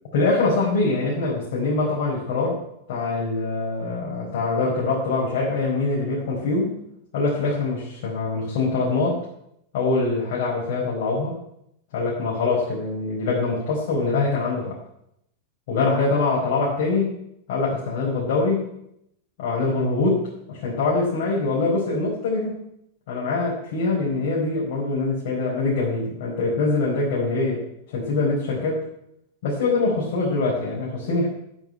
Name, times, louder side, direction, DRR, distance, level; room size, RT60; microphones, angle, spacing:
voice 1, 0.1-2.6 2.9-6.7 7.1-9.2 9.7-11.4 11.9-14.8 15.7-17.2 17.5-18.7 19.4-22.6 23.1-28.8 29.4-31.3, left 3 dB, 55° left, -4 dB, 4.6 m, -24 dB
10.5 x 9.4 x 9.9 m, 0.77 s
figure-of-eight pair, 90°, 0 cm